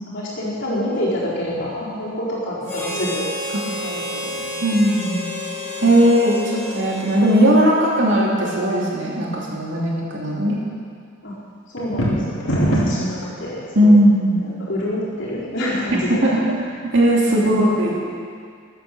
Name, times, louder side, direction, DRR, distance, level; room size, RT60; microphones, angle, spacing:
voice 1, 0.1-3.3 3.8-4.5 5.8-5.9 11.2-11.3 11.7-14.0 14.7-16.3 17.3-17.5, left 1 dB, 60° left, -7 dB, 4.3 m, -27 dB
Harmonica, 2.6-8.1, left 1 dB, 15° left, 3.9 m, -30 dB
voice 2, 4.6-5.3 5.8-10.6 13.7-14.3 15.9-18.0, right 1 dB, 60° right, -4 dB, 2.9 m, -18 dB
sound 1, 11.8-13.1, right 1 dB, 80° left, 3.1 m, -20 dB
14.0 x 9.2 x 6.9 m, 2.1 s
head